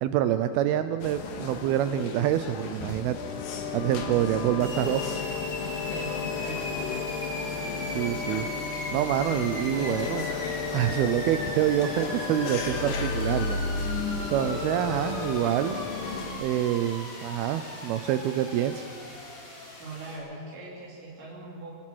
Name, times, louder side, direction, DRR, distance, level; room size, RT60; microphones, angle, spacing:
voice 1, 0.0-3.2 3.7-5.2 7.9-10.3 10.7-13.6 14.3-15.8 16.4-18.9, right 11 dB, 80° right, 10 dB, 2.5 m, -26 dB
sound 1, 1.0-16.3, left 5 dB, 65° left, 3.1 m, -33 dB
sound 2, 4.6-20.2, left 1 dB, 50° left, 6.8 m, -39 dB
voice 2, 5.9-6.8 19.8-21.7, right 2 dB, 55° right, -5 dB, 5.0 m, -41 dB
24.5 x 18.0 x 6.3 m, 2.6 s
omnidirectional pair, 4.6 m